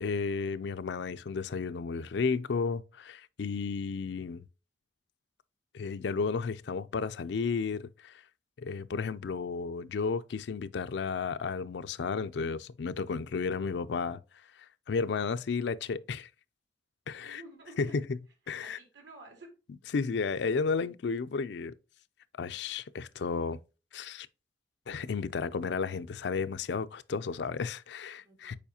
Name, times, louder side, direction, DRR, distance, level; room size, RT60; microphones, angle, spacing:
voice 1, 0.0-4.4 5.7-8.1 8.6-14.2 14.9-16.3 17.1-17.4 17.8-17.9 18.5-18.8 19.9-21.7 22.4-23.6 23.9-24.3 24.9-28.6, left 5 dB, 65° left, 0.4 m, -33 dB
voice 2, 17.2-18.0 18.6-19.5 28.2-28.6, right 2 dB, 75° right, 2.7 m, -51 dB
7.1 x 4.9 x 2.8 m
head